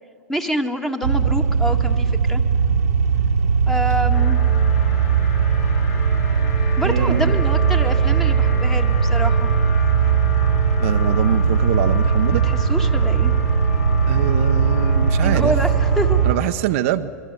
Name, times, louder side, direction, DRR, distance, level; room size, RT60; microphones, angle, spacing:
voice 1, 0.3-2.4 3.7-4.4 6.8-9.5 12.3-13.3 15.2-16.2, equal, 5° left, 6 dB, 1.8 m, -26 dB
sound 1, 1.0-16.3, right 6 dB, 75° right, 1.4 m, -18 dB
sound 2, 4.1-16.5, left 4 dB, 70° left, 4.7 m, -34 dB
voice 2, 6.8-7.4 10.8-12.4 14.1-15.5 16.2-17.1, right 13 dB, 55° right, 8 dB, 0.9 m, -24 dB
26.5 x 22.5 x 6.8 m, 2.3 s
hypercardioid pair, 105°, 8 cm